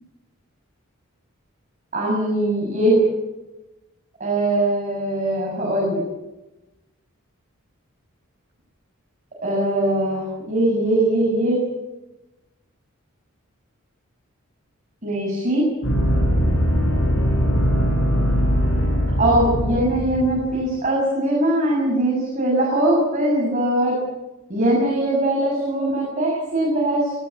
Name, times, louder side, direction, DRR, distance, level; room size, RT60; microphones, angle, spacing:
voice 1, 1.9-3.0 4.2-6.0 9.4-11.6 15.0-15.6 19.2-24.0 24.5-27.1, right 1 dB, 35° right, -3 dB, 6.9 m, -21 dB
sound 1, 15.8-20.7, equal, 75° left, 6.7 m, -20 dB
19.5 x 19.0 x 8.5 m, 1.0 s
head